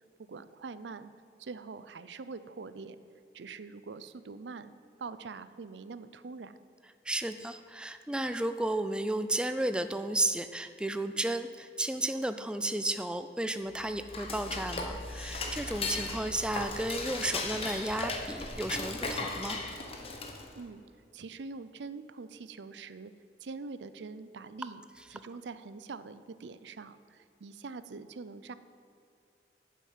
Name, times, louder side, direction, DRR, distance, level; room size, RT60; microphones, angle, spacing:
voice 1, 0.2-1.1 1.4-3.0 3.3-4.7 5.0-6.5 20.5-20.8 21.1-23.1 23.4-24.8 25.1-28.5, right 4 dB, 80° right, 13 dB, 0.5 m, -44 dB
voice 2, 7.0-19.6, right 1 dB, 5° right, 9 dB, 0.3 m, -33 dB
Dishes pots and pans / Cutlery silverware, 13.7-20.6, left 3 dB, 35° left, 1.1 m, -37 dB
9.2 x 7.5 x 7.4 m, 2.6 s
head